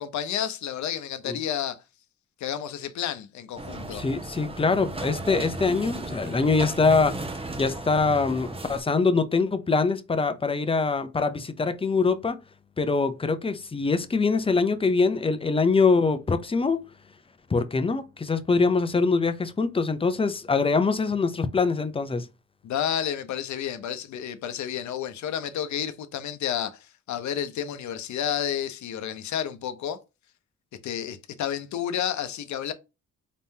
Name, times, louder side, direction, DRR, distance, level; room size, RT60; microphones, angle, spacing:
voice 1, 0.0-1.8 2.4-4.0 22.6-30.0 30.8-32.7, left 9 dB, 70° left, 0.8 m, -31 dB
sound 1, 3.6-8.8, right 2 dB, 20° right, 0.9 m, -35 dB
voice 2, 3.9-7.2 7.6-12.4 12.8-16.8 17.5-22.3, left 4 dB, 20° left, 0.6 m, -23 dB
4.1 x 3.6 x 2.7 m
cardioid pair, 90°, 30 cm